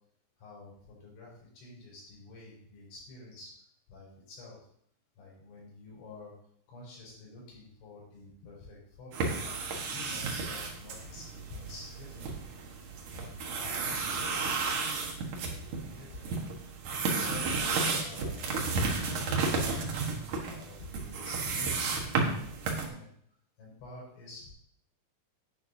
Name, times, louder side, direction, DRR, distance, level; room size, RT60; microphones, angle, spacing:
voice 1, 0.4-3.5 3.9-4.6 5.2-6.3 6.7-9.3 9.9-12.3 13.1-15.1 15.4-16.4 17.2-19.9 20.4-23.1 23.6-24.5, left 2 dB, 70° left, -5 dB, 6.9 m, -49 dB
sound 1, 9.1-22.9, right 4 dB, 70° right, 1.9 m, -33 dB
11.0 x 10.0 x 2.8 m, 0.65 s
omnidirectional pair, 5.6 m